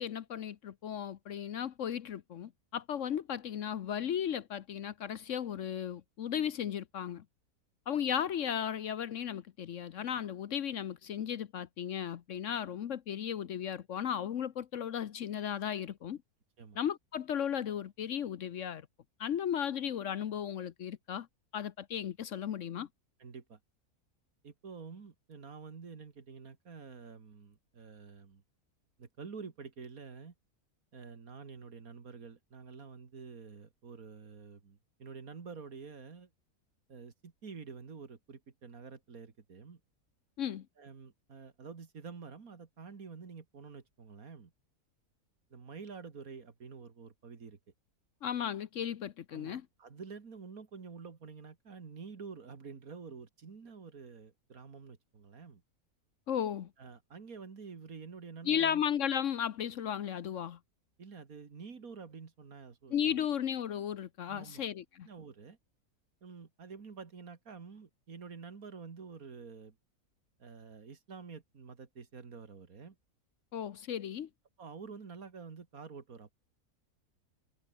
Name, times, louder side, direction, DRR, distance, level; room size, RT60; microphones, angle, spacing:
voice 1, 0.0-7.2 7.9-16.2 16.8-18.8 19.2-21.3 21.5-22.9 40.4-40.7 48.2-49.7 56.3-56.7 58.4-60.6 62.9-65.1 73.5-74.3, left 9 dB, 60° left, 1.1 m, -35 dB
voice 2, 23.2-23.6 24.4-28.4 29.0-30.3 30.9-36.3 36.9-39.8 40.8-44.5 45.5-47.6 49.3-55.6 56.8-58.8 61.0-63.2 64.3-64.6 65.1-65.6 66.2-69.8 70.4-73.0 74.6-76.3, right 5 dB, 70° right, 2.5 m, -48 dB
omnidirectional pair, 1.6 m